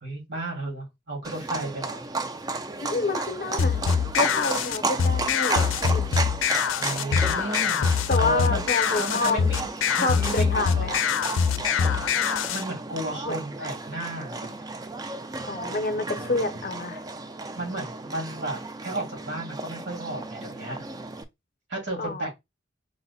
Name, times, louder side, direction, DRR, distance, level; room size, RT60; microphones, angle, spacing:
voice 1, 0.0-2.0 6.7-7.9 8.2-8.6 9.0-9.7 10.0-11.0 12.5-14.6 16.1-16.4 17.6-20.8 21.7-22.3, right 1 dB, 70° right, 2.1 m, -33 dB
Livestock farm animals working animals, 1.2-21.2, right 3 dB, 20° right, 0.3 m, -34 dB
voice 2, 2.8-3.8 4.1-6.3 8.1-9.4 10.0-11.0 13.3-13.4 15.5-17.0 22.0-22.3, left 3 dB, 45° left, 0.6 m, -28 dB
sound 1, 3.6-12.6, left 6 dB, 85° left, 0.4 m, -24 dB
4.7 x 2.1 x 4.0 m
head